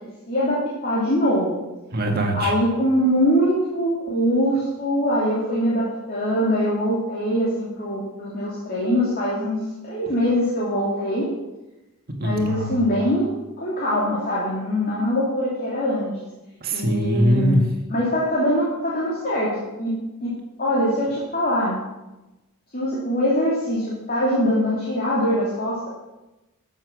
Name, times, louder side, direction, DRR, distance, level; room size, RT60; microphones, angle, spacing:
voice 1, 0.3-1.6 2.3-11.3 12.2-16.1 16.7-19.9 20.2-21.8 22.7-25.9, equal, 40° left, -6 dB, 3.1 m, -23 dB
voice 2, 1.9-2.5 12.2-12.8 16.6-17.6, equal, 45° right, 3 dB, 2.0 m, -21 dB
13.5 x 7.2 x 6.3 m, 1.0 s
head